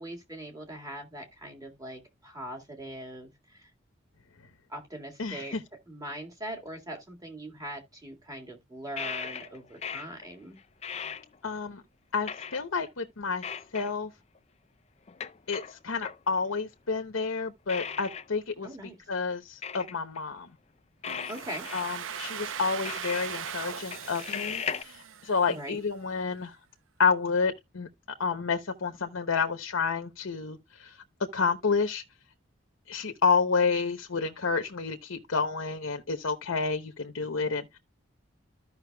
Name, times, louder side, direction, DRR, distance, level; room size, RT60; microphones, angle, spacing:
voice 1, 0.0-3.7 4.7-5.6 5.9-10.6 18.6-19.0 21.3-21.7 25.5-25.8, right 1 dB, 20° right, 1.9 m, -41 dB
voice 2, 5.2-5.6 11.4-11.8 12.1-13.4 13.7-14.1 15.5-18.7 19.1-20.5 21.7-26.5 27.0-27.9 28.2-30.9 31.3-32.0 32.9-37.8, left 5 dB, 90° left, 0.9 m, -29 dB
sound 1, 9.0-10.3 10.6-11.7 12.3-12.9 13.4-13.9 14.3-14.4 15.1-16.2 17.2-17.3 17.7-18.3 18.7-18.8 19.6-20.2 21.0-22.3 22.7-23.5 23.9-24.8, left 7 dB, 30° left, 0.4 m, -37 dB
Domestic sounds home sounds, 21.1-25.8, right 8 dB, 75° right, 0.7 m, -39 dB
14.0 x 5.6 x 2.2 m
head